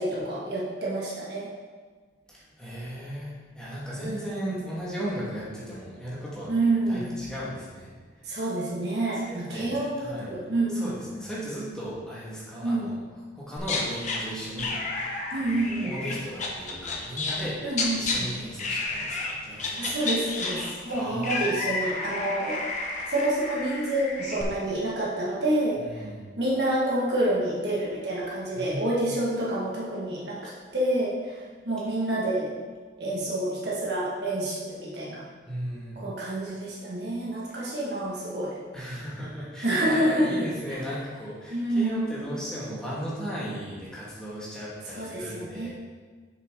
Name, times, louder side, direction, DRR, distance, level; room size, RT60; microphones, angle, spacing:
voice 1, 0.0-1.5 4.0-4.6 6.5-7.1 8.2-10.9 12.6-12.9 15.3-15.9 17.6-18.3 19.8-22.8 23.1-26.0 26.4-32.5 33.0-35.2 35.9-38.6 39.6-40.5 41.5-42.1 44.9-45.7, right 1 dB, 60° right, -6 dB, 1.8 m, -28 dB
voice 2, 2.3-6.5 6.9-8.3 9.2-10.3 10.7-12.9 13.3-17.6 17.9-19.9 20.9-21.5 25.8-26.3 28.5-29.1 35.5-36.0 38.7-45.7, equal, 5° left, -8 dB, 1.8 m, -36 dB
sound 1, 13.6-14.2 14.6-17.5 17.7-18.2 18.6-19.3 19.6-24.4, left 3 dB, 40° left, 1.0 m, -31 dB
7.6 x 6.3 x 3.8 m, 1.5 s
head